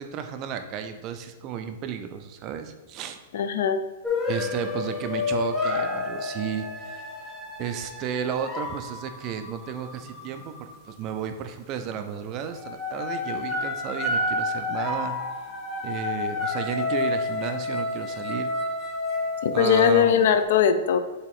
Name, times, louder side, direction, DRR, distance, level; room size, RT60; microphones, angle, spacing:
voice 1, 0.0-3.2 4.3-7.1 7.6-10.5 10.8-15.2 15.8-18.5 19.5-20.3, right 8 dB, 25° right, 8 dB, 0.4 m, -33 dB
voice 2, 3.3-3.8 19.4-21.0, left 8 dB, 55° left, 9 dB, 0.5 m, -20 dB
sound 1, 4.0-11.0 11.8-12.1 12.5-20.4, left 3 dB, 5° left, 0.8 m, -30 dB
6.9 x 2.9 x 4.6 m, 1.2 s
supercardioid pair, 175°, 0 cm